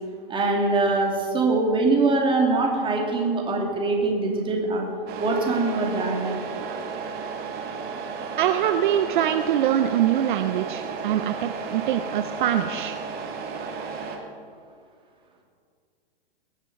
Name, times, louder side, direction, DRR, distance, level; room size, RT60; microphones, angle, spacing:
voice 1, 0.3-4.9 5.2-6.3, right 3 dB, 15° right, -1 dB, 2.6 m, -23 dB
Truck, 5.1-14.2, right 5 dB, 35° right, 1.8 m, -33 dB
voice 2, 8.4-13.0, right 10 dB, 55° right, 8 dB, 0.7 m, -23 dB
20.0 x 7.4 x 5.3 m, 2.2 s
hypercardioid pair, 110°, 29 cm